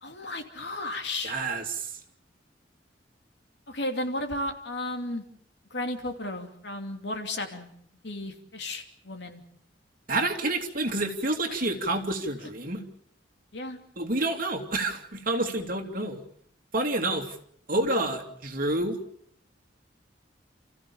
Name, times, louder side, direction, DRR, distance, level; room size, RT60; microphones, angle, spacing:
voice 1, 0.0-1.3 3.7-5.2 5.7-7.7 8.0-9.4 11.5-11.6 13.5-13.8, left 1 dB, 70° left, 5 dB, 2.9 m, -34 dB
voice 2, 1.2-2.0 10.1-12.8 14.0-16.2 16.7-17.4 17.7-19.0, right 2 dB, 50° right, 3 dB, 2.8 m, -28 dB
29.5 x 15.5 x 7.1 m, 0.66 s
head